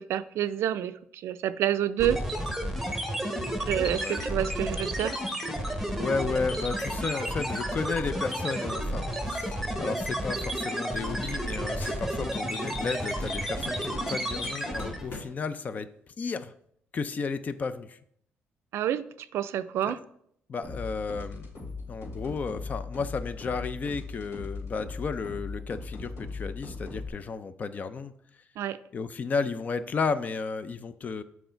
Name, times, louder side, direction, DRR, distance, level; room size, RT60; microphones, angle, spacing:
voice 1, 0.0-2.2 3.6-5.2 18.7-20.0 28.6-28.8, right 11 dB, 80° right, 0.4 m, -28 dB
sound 1, 2.0-15.2, equal, ahead, 1.0 m, -31 dB
voice 2, 5.9-15.9 16.2-16.5 16.9-18.0 19.8-20.0 20.5-21.5 21.9-28.1 28.9-31.2, left 4 dB, 35° left, 0.5 m, -33 dB
sound 2, 10.2-11.5 11.8-12.5 12.8-15.5, left 2 dB, 60° left, 1.9 m, -46 dB
sound 3, 20.6-27.1, left 3 dB, 80° left, 3.4 m, -39 dB
7.9 x 4.7 x 4.4 m
cardioid pair, 130°, 4 cm